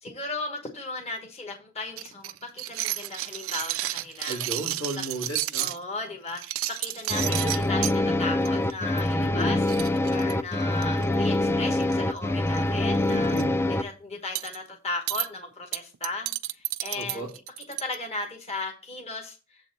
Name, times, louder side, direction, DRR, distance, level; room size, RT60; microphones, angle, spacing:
voice 1, 0.0-4.4 5.6-9.6 10.1-13.3 13.7-17.3 17.7-19.4, left 3 dB, 30° left, 2 dB, 1.2 m, -36 dB
sound 1, 2.0-5.8 6.3-8.0 8.4-8.7 9.0-9.1 9.4-9.5 9.7-11.0 11.8-12.2 12.5-12.6 13.0-13.4 14.4-14.6 15.1-15.3 15.7-18.0, right 15 dB, 80° right, 0.4 m, -31 dB
voice 2, 4.3-5.7 7.1-7.5 9.2-9.5 13.1-13.5 16.9-17.3, right 1 dB, 85° left, -1 dB, 2.8 m, -34 dB
sound 2, 7.1-13.8, left 2 dB, 10° left, 0.4 m, -25 dB
7.5 x 4.0 x 5.9 m, 0.33 s
head